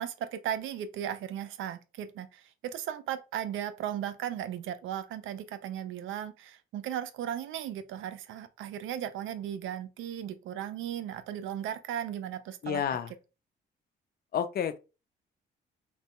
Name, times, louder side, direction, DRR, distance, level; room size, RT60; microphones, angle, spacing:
voice 1, 0.0-12.8, right 10 dB, 80° right, 0.5 m, -36 dB
voice 2, 12.6-13.1 14.3-14.8, left 8 dB, 50° left, 0.5 m, -30 dB
3.2 x 2.2 x 2.9 m
cardioid pair, 90°, 20 cm